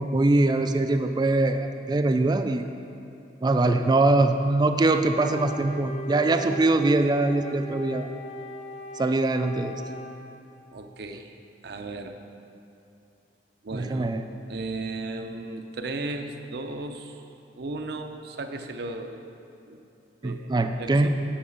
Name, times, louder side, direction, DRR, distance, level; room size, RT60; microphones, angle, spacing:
voice 1, 0.0-2.6 3.4-8.1 9.0-9.8 13.7-14.2 20.2-21.1, right 2 dB, 25° right, 8 dB, 0.3 m, -23 dB
Wind instrument woodwind instrument, 5.1-10.3, equal, 35° left, 0.8 m, -39 dB
voice 2, 10.7-11.3 11.6-12.2 13.6-14.1 14.5-17.2 17.6-19.2 19.7-19.8 20.2-20.5 20.8-21.1, right 2 dB, 65° right, 6 dB, 0.6 m, -35 dB
8.8 x 4.7 x 6.5 m, 2.7 s
head